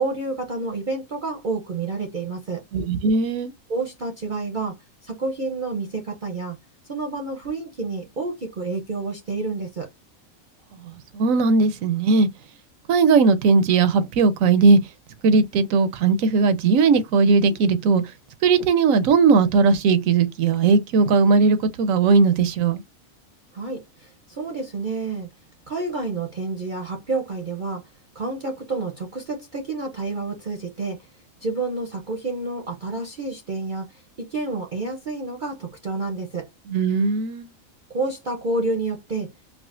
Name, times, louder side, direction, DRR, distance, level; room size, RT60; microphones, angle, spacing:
voice 1, 0.0-2.6 3.7-4.8 5.0-6.6 6.9-9.9 23.5-25.3 25.7-31.1 31.4-36.5 37.9-39.3, right 3 dB, 45° right, 0.7 m, -29 dB
voice 2, 2.7-3.5 10.8-12.3 12.9-14.8 15.2-18.0 18.4-22.8 36.7-37.5, right 4 dB, 75° right, 1.0 m, -18 dB
4.8 x 2.0 x 2.4 m
omnidirectional pair, 1.4 m